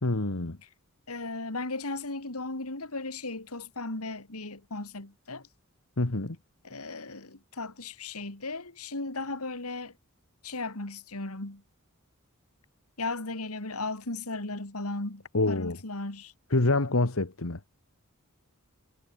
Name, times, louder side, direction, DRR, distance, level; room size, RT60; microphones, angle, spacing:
voice 1, 0.0-0.6 6.0-6.4 15.3-15.8 16.5-17.6, left 2 dB, 70° left, 1.5 m, -26 dB
voice 2, 1.1-5.5 6.6-9.9 10.4-11.6 13.0-16.3, left 2 dB, 90° left, 3.2 m, -36 dB
head